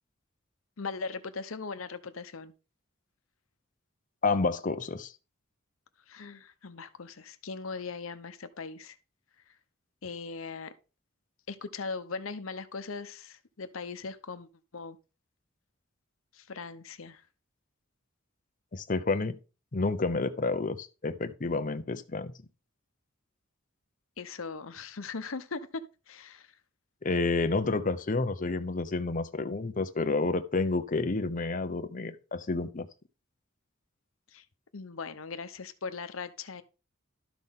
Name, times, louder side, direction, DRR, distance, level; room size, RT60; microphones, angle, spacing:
voice 1, 0.8-2.5 6.1-9.0 10.0-10.7 11.5-15.0 16.3-17.2 24.2-25.8 26.1-26.6 34.3-34.4 34.7-36.6, left 4 dB, 85° left, 0.8 m, -39 dB
voice 2, 4.2-5.1 18.7-19.4 19.7-22.3 27.0-32.9, left 3 dB, 40° left, 0.7 m, -29 dB
12.5 x 6.1 x 3.7 m
head